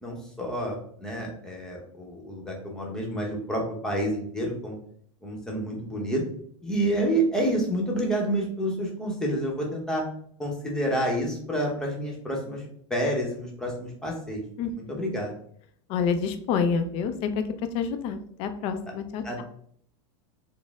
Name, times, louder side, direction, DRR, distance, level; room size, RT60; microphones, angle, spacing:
voice 1, 0.0-4.7 5.2-6.2 6.6-10.0 10.4-12.6 12.9-14.4 14.8-15.3 19.2-19.4, right 1 dB, 5° left, -2 dB, 0.8 m, -29 dB
voice 2, 14.6-15.0 15.9-17.4 17.7-19.4, left 6 dB, 35° left, 8 dB, 0.4 m, -28 dB
4.1 x 2.0 x 3.4 m, 0.62 s
supercardioid pair, 155°, 16 cm